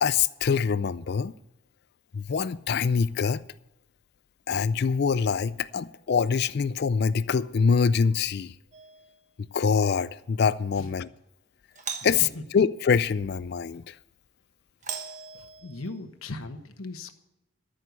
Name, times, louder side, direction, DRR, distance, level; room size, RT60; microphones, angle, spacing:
voice 1, 0.0-1.3 2.1-3.4 4.5-8.5 9.5-11.1 12.0-14.0, left 6 dB, 50° left, 0.4 m, -24 dB
Doorbell, 8.7-9.2 11.7-12.3 14.8-16.0, right 6 dB, 35° right, 1.2 m, -39 dB
voice 2, 12.0-12.4 15.3-17.1, left 2 dB, 90° left, 1.2 m, -38 dB
13.5 x 6.5 x 8.3 m
head